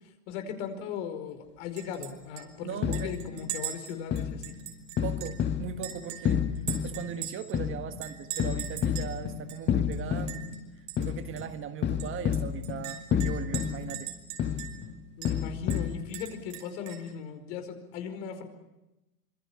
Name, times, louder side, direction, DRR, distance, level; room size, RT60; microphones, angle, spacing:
voice 1, 0.3-4.5 15.2-18.4, left 7 dB, 55° left, 7 dB, 4.9 m, -38 dB
Chink clink, 1.8-2.1 2.4-2.5 2.9-5.4 5.8-7.6 8.0-9.1 9.5-9.6 9.9-10.6 10.9-11.1 11.4-11.5 12.0-14.9 15.2-15.3 15.7-17.1, right 11 dB, 65° right, 5.7 m, -40 dB
voice 2, 2.6-3.4 5.0-6.4 6.8-10.6 11.0-14.1, right 8 dB, 30° right, 8 dB, 1.5 m, -39 dB
sound 1, 2.8-3.6 4.1-16.0, left 8 dB, 25° left, 1.5 m, -31 dB
26.0 x 24.0 x 7.0 m, 0.97 s
hypercardioid pair, 115°, 43 cm